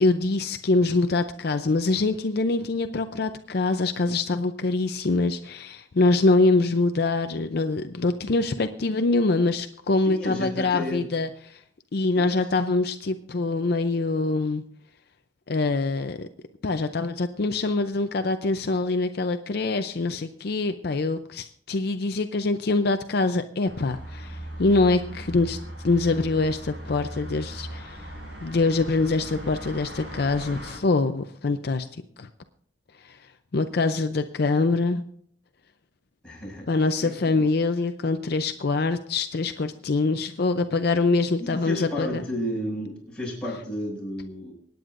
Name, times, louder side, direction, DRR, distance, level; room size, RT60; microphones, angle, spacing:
voice 1, 0.0-11.6 11.9-14.6 15.5-16.3 16.6-25.6 25.8-28.0 28.4-31.9 32.2-32.3 33.1-33.2 33.5-35.0 36.7-42.2, left 3 dB, 55° left, 8 dB, 0.5 m, -24 dB
voice 2, 10.0-11.1 12.1-12.5 36.2-37.4 41.4-44.5, equal, 5° left, -5 dB, 6.2 m, -33 dB
sound 1, 23.6-30.8, equal, 70° right, 5.8 m, -38 dB
25.5 x 9.3 x 2.5 m, 0.62 s
head